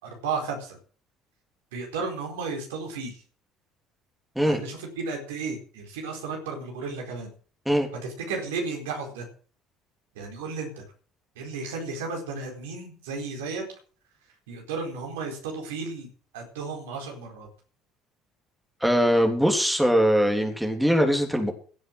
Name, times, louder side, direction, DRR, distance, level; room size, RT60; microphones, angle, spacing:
voice 1, 0.0-0.8 1.7-3.1 4.4-7.3 8.3-9.2 10.1-10.8 11.4-13.6 14.5-16.1 16.3-17.5, right 4 dB, 70° right, 2 dB, 4.3 m, -33 dB
voice 2, 18.8-21.5, equal, ahead, 3 dB, 3.5 m, -21 dB
16.5 x 7.8 x 6.3 m, 0.42 s
figure-of-eight pair, 55°, 0 cm